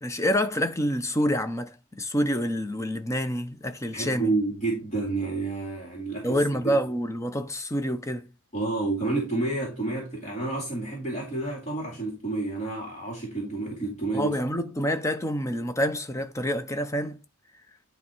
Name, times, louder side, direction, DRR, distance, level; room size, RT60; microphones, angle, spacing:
voice 1, 0.0-4.3 6.2-8.3 14.1-17.2, equal, 15° left, 0.7 m, -27 dB
voice 2, 3.9-6.8 8.5-14.3, right 3 dB, 30° left, 2.5 m, -30 dB
10.0 x 3.3 x 4.5 m
head